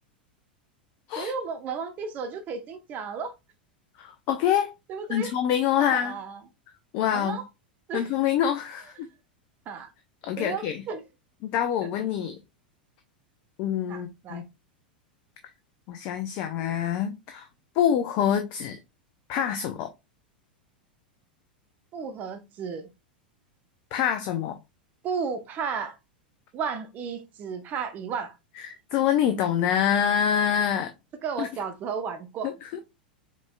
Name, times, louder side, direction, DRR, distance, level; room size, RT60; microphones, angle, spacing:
voice 1, 1.2-3.3 4.9-5.3 5.8-6.4 7.1-7.5 7.9-8.1 9.7-9.9 10.4-11.0 13.9-14.4 21.9-22.9 25.0-26.0 26.5-28.3 31.2-32.5, right 6 dB, 35° right, 0.9 m, -33 dB
voice 2, 4.0-4.7 5.1-6.2 6.9-7.4 7.9-9.1 10.2-10.8 11.4-12.4 13.6-14.4 15.9-17.5 17.7-18.8 19.3-19.9 23.9-24.6 28.6-30.9 31.4-31.5 32.4-32.8, left 9 dB, 45° left, 0.6 m, -26 dB
5.0 x 3.4 x 2.3 m
figure-of-eight pair, 90°, 5 cm